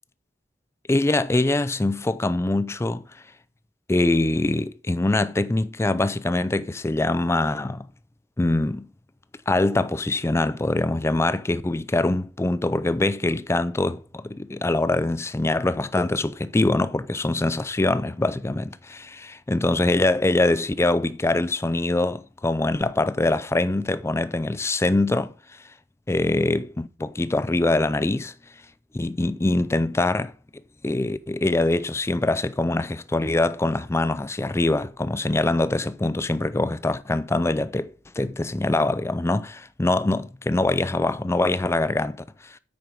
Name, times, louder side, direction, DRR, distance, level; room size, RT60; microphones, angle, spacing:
voice 1, 0.9-3.1 3.9-7.9 8.4-8.9 9.5-25.3 26.1-28.3 28.9-30.3 30.8-42.6, left 2 dB, 15° left, 0.4 m, -23 dB
8.8 x 5.2 x 4.6 m
head